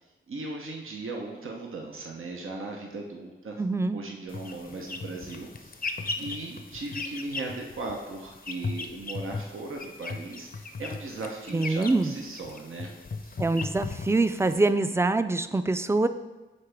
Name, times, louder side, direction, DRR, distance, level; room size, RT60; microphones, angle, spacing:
voice 1, 0.3-3.6 3.9-12.9 13.2-13.4, right 2 dB, 85° right, 0 dB, 0.7 m, -38 dB
voice 2, 3.6-4.0 11.5-12.1 13.4-16.1, right 2 dB, 15° right, 11 dB, 0.3 m, -24 dB
sound 1, 4.3-14.7, left 3 dB, 45° left, 0.5 m, -38 dB
8.4 x 3.9 x 3.4 m, 1.1 s
cardioid pair, 50°, 21 cm